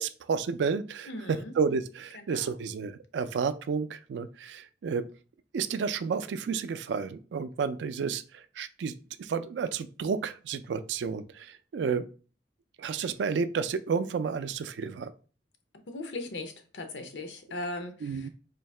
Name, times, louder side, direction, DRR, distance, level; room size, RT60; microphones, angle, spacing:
voice 1, 0.0-5.0 5.5-12.1 12.8-15.1 18.0-18.3, right 5 dB, 85° right, 0.3 m, -31 dB
voice 2, 1.1-1.6 2.1-2.6 15.9-18.3, left 2 dB, 90° left, 0.7 m, -39 dB
3.8 x 2.7 x 3.2 m
head